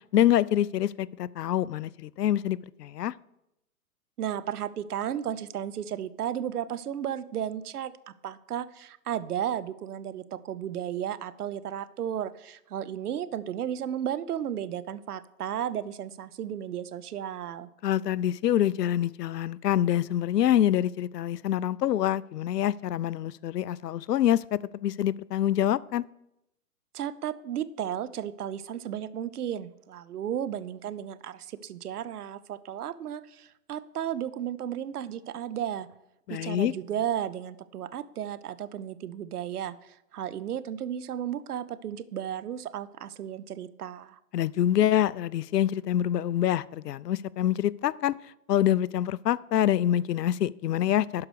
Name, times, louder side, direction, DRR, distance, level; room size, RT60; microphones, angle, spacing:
voice 1, 0.1-3.1 17.8-26.0 36.3-36.7 44.3-48.2 48.5-51.3, left 11 dB, 85° left, 22 dB, 0.5 m, -26 dB
voice 2, 4.2-17.7 26.9-35.9 36.3-44.2, right 10 dB, 70° right, 15 dB, 0.8 m, -34 dB
11.5 x 4.8 x 6.4 m, 0.84 s
hypercardioid pair, 140°, 47 cm